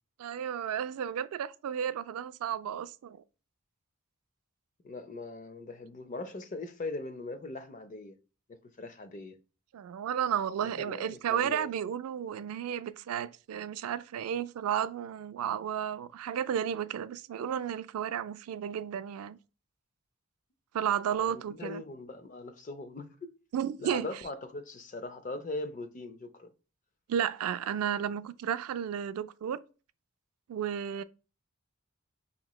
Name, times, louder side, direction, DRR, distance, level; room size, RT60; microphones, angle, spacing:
voice 1, 0.2-3.2 9.7-19.4 20.7-21.8 23.5-24.1 27.1-29.6 30.5-31.0, right 9 dB, 85° right, 0.3 m, -33 dB
voice 2, 4.8-8.1 8.5-9.4 10.6-11.7 21.2-23.3 23.8-26.5, left 2 dB, 35° left, 0.4 m, -40 dB
5.0 x 3.0 x 2.2 m
head